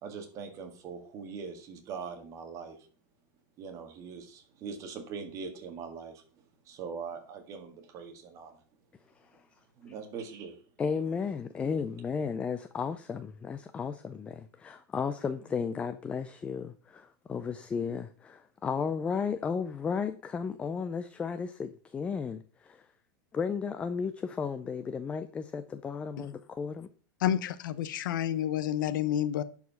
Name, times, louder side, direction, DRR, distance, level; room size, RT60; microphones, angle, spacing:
voice 1, 0.0-2.9 3.6-8.6 9.8-10.6, right 5 dB, 30° right, 1.7 m, -42 dB
voice 2, 10.8-22.9 23.3-26.9, left 6 dB, 10° left, 0.3 m, -34 dB
voice 3, 27.2-29.4, left 11 dB, 75° left, 0.8 m, -29 dB
10.5 x 4.7 x 5.6 m
supercardioid pair, 160°, 11 cm